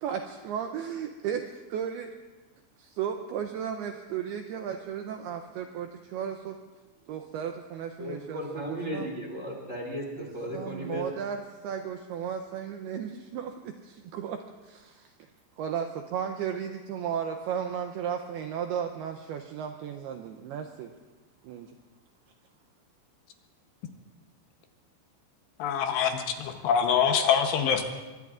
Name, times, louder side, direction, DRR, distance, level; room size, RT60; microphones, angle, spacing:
voice 1, 0.0-2.1 2.8-6.6 7.1-9.1 10.2-10.3 10.5-11.4 11.6-14.4 14.6-15.3 15.6-20.9 21.4-21.7, right 8 dB, 80° right, 5 dB, 2.3 m, -34 dB
voice 2, 8.0-11.1, equal, 25° right, -1 dB, 1.9 m, -35 dB
voice 3, 25.6-27.8, left 7 dB, 75° left, 5 dB, 2.9 m, -25 dB
24.5 x 22.5 x 2.5 m, 1.2 s
omnidirectional pair, 5.4 m